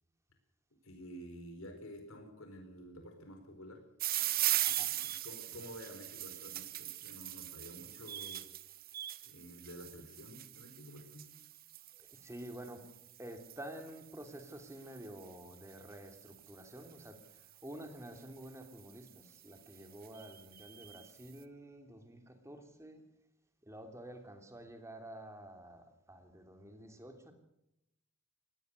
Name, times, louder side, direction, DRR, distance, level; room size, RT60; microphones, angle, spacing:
voice 1, 0.8-3.8 5.0-8.4 9.2-11.3, equal, 70° left, 5 dB, 4.4 m, -50 dB
sound 1, 4.0-17.2 18.1-18.5 19.1-19.2 19.4-19.5 19.8-21.1, right 14 dB, 45° right, 1.1 m, -40 dB
voice 2, 11.9-12.9 13.2-23.0 23.6-27.3, right 1 dB, 15° right, 6 dB, 3.1 m, -50 dB
22.0 x 18.0 x 6.6 m, 0.82 s
head